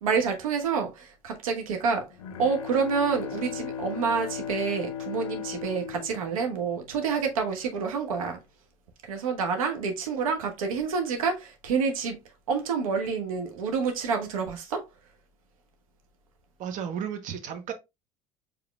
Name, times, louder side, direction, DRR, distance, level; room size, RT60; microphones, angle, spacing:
voice 1, 0.0-2.1 2.4-8.4 9.0-12.2 12.5-14.8, right 5 dB, 75° right, 1.1 m, -28 dB
Bowed string instrument, 2.1-7.3, left 8 dB, 75° left, 0.5 m, -37 dB
voice 2, 16.6-17.7, right 8 dB, 45° right, 0.9 m, -33 dB
4.9 x 3.6 x 2.3 m
figure-of-eight pair, 70°, 18 cm